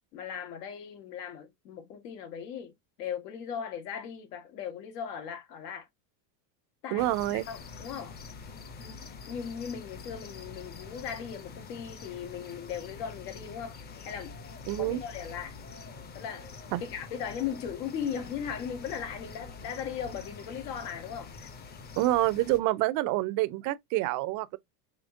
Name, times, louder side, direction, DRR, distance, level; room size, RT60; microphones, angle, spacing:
voice 1, 0.1-2.7 3.0-5.9 6.8-8.2 8.8-13.8 14.1-14.4 14.8-15.6 16.1-16.5 16.8-21.3, left 8 dB, 85° left, 1.7 m, -38 dB
voice 2, 6.9-7.4 14.7-15.0 16.7-16.8 22.0-24.6, right 17 dB, 45° right, 0.4 m, -27 dB
sound 1, 7.0-22.6, left 5 dB, 20° left, 0.6 m, -45 dB
5.0 x 3.1 x 2.6 m
supercardioid pair, 135°, 46 cm